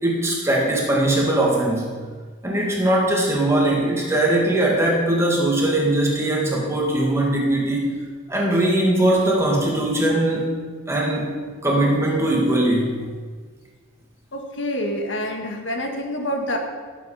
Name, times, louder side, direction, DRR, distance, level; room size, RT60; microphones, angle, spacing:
voice 1, 0.0-1.9 2.4-7.9 8.3-10.5 10.9-11.3 11.6-13.0, right 1 dB, 15° right, -2 dB, 2.1 m, -20 dB
voice 2, 14.3-16.6, equal, 65° left, 3 dB, 1.7 m, -27 dB
18.0 x 7.7 x 5.0 m, 1.5 s
head